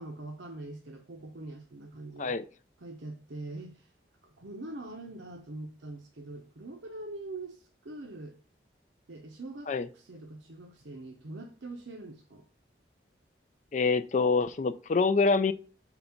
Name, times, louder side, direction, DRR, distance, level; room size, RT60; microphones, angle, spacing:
voice 1, 0.0-2.3 2.8-3.9 4.2-8.4 9.1-12.5, right 2 dB, 85° right, 0.8 m, -43 dB
voice 2, 13.7-15.5, left 4 dB, 40° left, 0.4 m, -26 dB
4.6 x 4.0 x 5.7 m
head